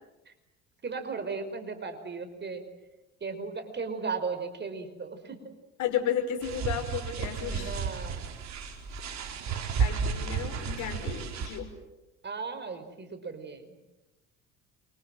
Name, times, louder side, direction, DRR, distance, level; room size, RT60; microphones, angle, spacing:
voice 1, 0.8-2.6 3.2-5.5 7.2-8.3 12.2-13.8, right 5 dB, 30° right, 8 dB, 5.3 m, -36 dB
voice 2, 5.8-7.8 9.2-9.3 9.8-11.7, left 9 dB, 60° left, 5 dB, 5.7 m, -33 dB
sound 1, 6.4-11.6, right 6 dB, 55° right, 4.5 m, -32 dB
29.5 x 25.5 x 7.8 m, 1.0 s
hypercardioid pair, 65°, 34 cm